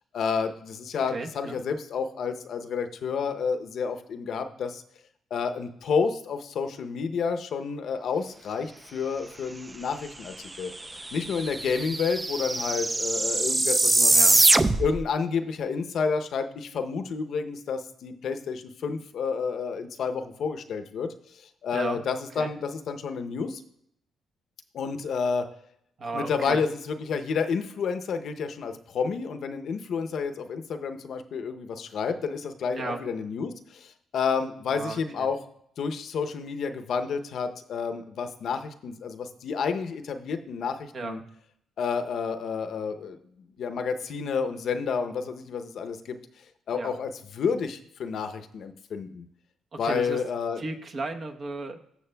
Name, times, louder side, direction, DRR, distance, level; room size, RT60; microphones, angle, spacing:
voice 1, 0.1-4.8 5.3-14.1 14.8-23.6 24.7-25.5 26.1-35.4 35.8-41.2 41.8-43.2 43.6-46.2 46.7-49.2 49.8-50.6, left 5 dB, 65° left, 7 dB, 0.7 m, -30 dB
voice 2, 1.1-1.6 14.1-14.4 21.7-22.0 22.3-22.5 26.0-26.6 32.8-33.0 34.7-35.3 40.9-41.2 46.7-47.0 49.7-50.2 50.6-51.8, right 3 dB, 50° right, 4 dB, 1.0 m, -34 dB
sound 1, 10.5-10.6 10.8-15.1, right 2 dB, 20° right, 0.4 m, -23 dB
14.0 x 6.4 x 2.3 m, 0.73 s
cardioid pair, 90°, 0 cm